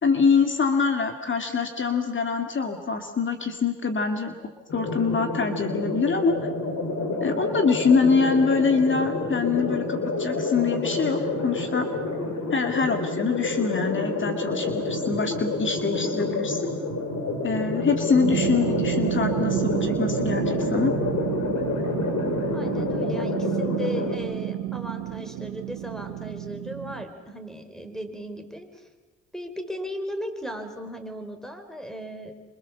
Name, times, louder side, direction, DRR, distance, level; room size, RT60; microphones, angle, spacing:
voice 1, 0.0-4.3 4.7-6.4 7.2-11.9 12.5-16.7 17.4-20.9, left 5 dB, 40° left, 5 dB, 2.4 m, -24 dB
sound 1, 4.7-24.2, left 2 dB, 65° left, 6.8 m, -28 dB
sound 2, 18.2-27.1, right 14 dB, 90° right, 1.2 m, -30 dB
voice 2, 22.5-28.9 29.3-32.3, equal, ahead, 7 dB, 4.4 m, -36 dB
28.0 x 25.5 x 7.3 m, 1.2 s
cardioid pair, 90°, 30 cm